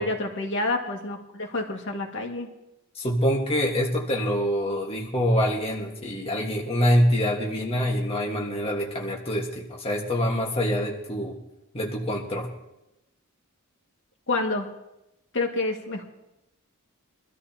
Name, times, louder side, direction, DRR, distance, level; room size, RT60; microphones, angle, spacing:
voice 1, 0.0-2.5 14.3-14.7 15.3-16.0, left 2 dB, 60° left, 2 dB, 2.0 m, -28 dB
voice 2, 3.0-11.4 11.7-12.5, equal, 25° left, -1 dB, 1.6 m, -25 dB
24.0 x 13.5 x 2.9 m, 0.92 s
head